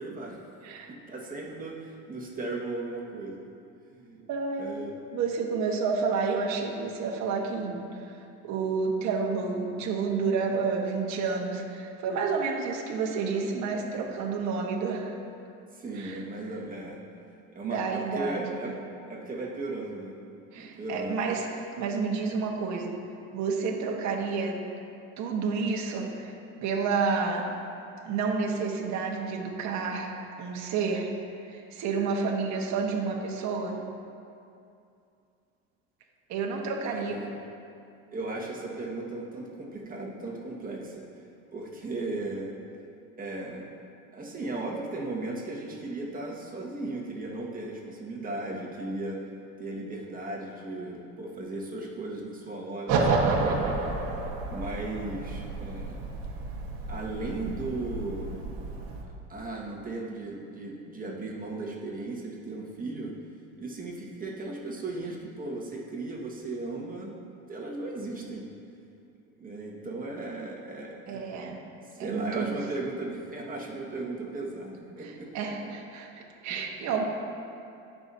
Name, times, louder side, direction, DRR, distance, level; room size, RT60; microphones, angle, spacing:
voice 1, 0.0-3.5 3.8-4.2 4.6-4.9 15.7-17.0 17.5-18.7 19.1-20.1 20.5-21.2 36.9-37.3 38.1-41.2 41.5-42.5 43.2-43.6 44.1-49.2 49.6-53.8 54.5-56.0 56.9-58.3 59.3-63.1 63.6-68.5 69.3-71.4 71.9-75.3 76.5-76.9, right 2 dB, 25° right, -3 dB, 1.8 m, -36 dB
voice 2, 4.3-4.6 5.1-15.1 15.9-16.2 17.6-18.7 20.5-21.5 21.8-22.9 23.3-24.6 25.2-26.3 26.6-27.5 28.0-30.1 30.4-31.1 31.5-33.8 36.3-37.2 71.1-71.6 72.0-72.6 75.0-77.0, right 5 dB, 55° right, 0 dB, 1.3 m, -30 dB
sound 1, 52.9-59.0, right 3 dB, 70° right, 1.4 m, -30 dB
16.0 x 6.0 x 2.8 m, 2.5 s
supercardioid pair, 110°, 34 cm